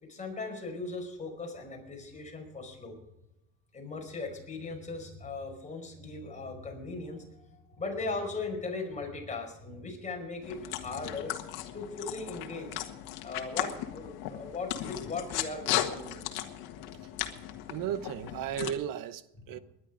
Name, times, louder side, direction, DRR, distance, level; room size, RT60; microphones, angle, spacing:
voice 1, 0.0-3.0 3.7-11.4 11.7-12.8 13.2-16.3 19.6-19.7, left 3 dB, 20° left, 5.1 m, -38 dB
sound 1, 10.4-18.7, left 13 dB, 80° left, 1.7 m, -36 dB
voice 2, 17.7-19.6, right 10 dB, 60° right, 1.0 m, -35 dB
19.5 x 11.0 x 5.1 m
cardioid pair, 125°, 37 cm